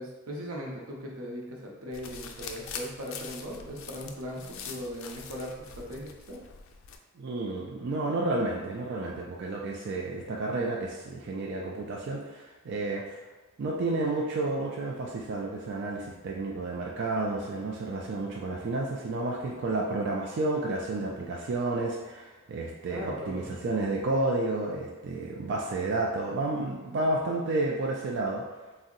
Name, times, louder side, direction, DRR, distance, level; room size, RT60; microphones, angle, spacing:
voice 1, 0.0-6.4 22.9-23.5, equal, 90° right, -2 dB, 0.7 m, -39 dB
sound 1, 1.9-7.0, left 6 dB, 70° left, 0.3 m, -43 dB
voice 2, 7.2-13.2 13.6-28.4, right 2 dB, 55° right, -2 dB, 0.3 m, -31 dB
2.6 x 2.1 x 3.7 m, 1.2 s
head